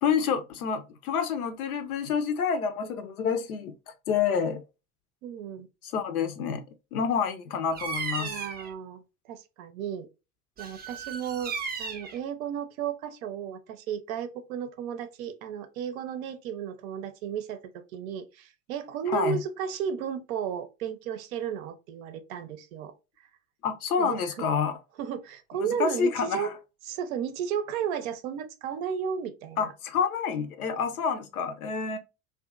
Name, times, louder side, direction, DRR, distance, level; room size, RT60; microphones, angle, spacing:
voice 1, 0.0-3.7 4.1-4.6 5.8-6.6 6.9-8.4 19.1-19.4 23.6-24.8 25.6-26.5 29.6-32.0, left 6 dB, 85° left, 0.6 m, -28 dB
voice 2, 5.2-5.7 8.2-10.1 10.6-11.5 11.8-23.3 24.0-24.5 25.0-26.5 26.8-29.7, right 8 dB, 70° right, 0.6 m, -34 dB
Bird vocalization bird call bird song, 7.7-8.7 10.6-12.2, right 5 dB, 20° right, 0.4 m, -35 dB
2.6 x 2.4 x 2.3 m
hypercardioid pair, 70°, 42 cm